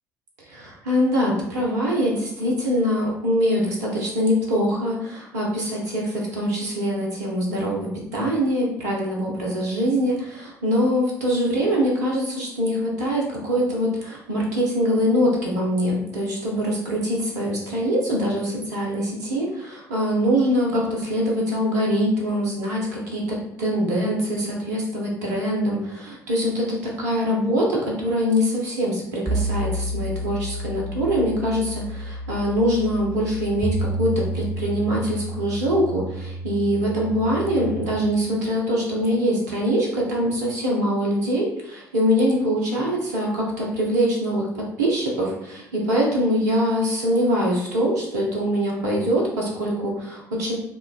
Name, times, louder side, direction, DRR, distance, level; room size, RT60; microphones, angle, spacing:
voice 1, 0.4-50.5, equal, 70° right, -2 dB, 0.7 m, -23 dB
sound 1, 29.3-38.0, right 1 dB, 20° right, 0.5 m, -30 dB
5.1 x 2.3 x 2.3 m, 0.78 s
figure-of-eight pair, 55°, 9 cm